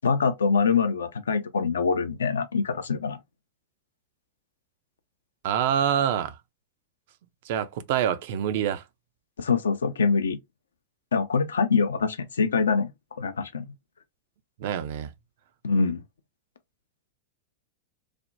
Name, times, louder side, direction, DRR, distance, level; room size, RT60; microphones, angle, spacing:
voice 1, 0.0-3.2 9.4-10.4 11.1-12.9 13.2-13.6 15.6-16.0, left 5 dB, 70° left, 0.4 m, -24 dB
voice 2, 5.4-6.4 7.4-8.8 14.6-15.1, right 9 dB, 50° right, 0.4 m, -26 dB
3.3 x 2.1 x 2.5 m
figure-of-eight pair, 90°, 0 cm